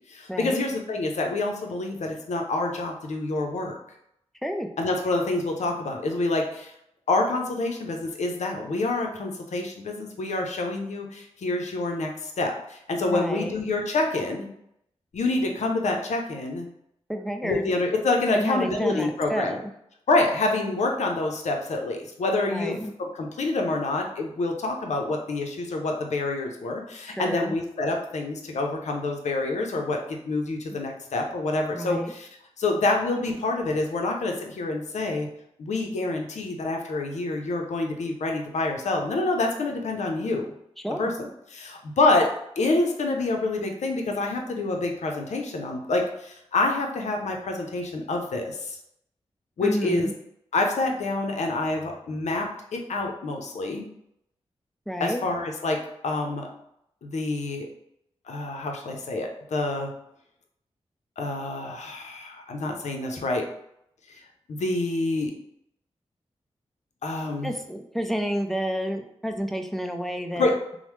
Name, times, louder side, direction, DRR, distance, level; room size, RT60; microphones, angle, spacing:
voice 1, 0.1-3.7 4.8-6.7 7.1-14.5 15.1-16.7 17.4-19.6 20.1-32.3 32.6-35.3 35.6-40.5 41.0-41.1 41.5-42.3 42.6-48.8 49.6-50.1 50.5-53.8 55.0-55.8 56.0-56.5 57.0-57.7 58.3-59.9 61.2-63.4 64.1-64.2 64.5-65.3 67.0-67.5 70.4-70.5, left 2 dB, 75° left, 2 dB, 0.5 m, -27 dB
voice 2, 13.1-13.5 17.1-17.7 18.3-19.6 22.5-22.9 27.1-27.5 31.7-32.1 40.8-41.1 49.6-50.1 54.9-55.3 67.4-70.5, equal, ahead, 5 dB, 0.4 m, -30 dB
3.1 x 2.0 x 3.0 m, 0.77 s
cardioid pair, 45°, 12 cm